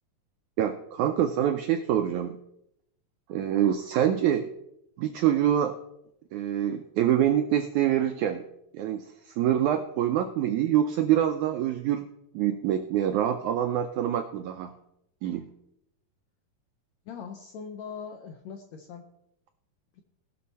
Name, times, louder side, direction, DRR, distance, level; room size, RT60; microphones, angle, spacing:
voice 1, 0.6-2.4 3.3-4.5 5.0-5.7 6.3-8.4 8.7-12.0 12.3-14.7 15.2-15.5, right 10 dB, 80° right, 6 dB, 1.7 m, -25 dB
voice 2, 17.1-19.1, left 6 dB, 75° left, 4 dB, 1.7 m, -41 dB
19.0 x 6.3 x 4.2 m, 0.79 s
omnidirectional pair, 4.1 m